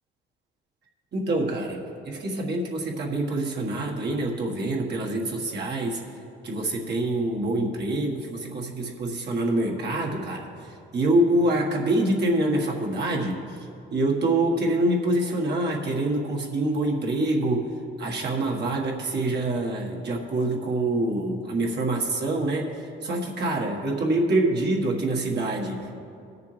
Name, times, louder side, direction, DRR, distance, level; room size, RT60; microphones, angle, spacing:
voice 1, 1.1-1.8 2.0-6.0 6.4-10.5 10.9-13.4 13.9-17.7 18.0-26.0, right 1 dB, 60° right, -1 dB, 1.6 m, -25 dB
20.0 x 6.8 x 3.3 m, 2.6 s
cardioid pair, 90°, 20 cm